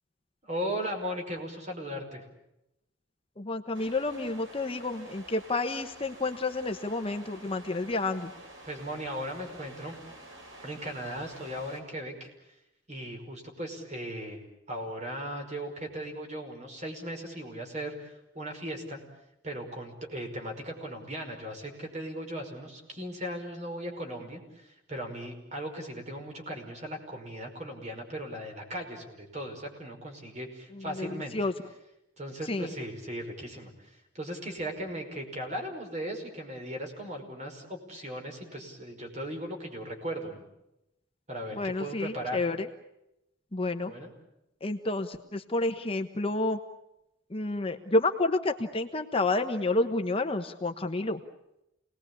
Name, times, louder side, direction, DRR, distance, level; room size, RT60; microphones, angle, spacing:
voice 1, 0.4-2.2 8.6-10.0 10.6-12.3 12.9-14.4 14.7-19.0 19.4-31.3 32.2-40.4 41.3-42.4 43.9-44.1, equal, 35° right, 3 dB, 5.5 m, -37 dB
voice 2, 3.4-8.3 30.7-31.5 32.5-32.7 41.5-42.7 43.5-43.9 44.6-46.6 47.3-51.2, left 2 dB, 30° left, 6 dB, 1.2 m, -30 dB
sound 1, 3.7-11.8, right 2 dB, 90° right, 5.3 m, -49 dB
28.0 x 20.0 x 8.6 m, 0.88 s
head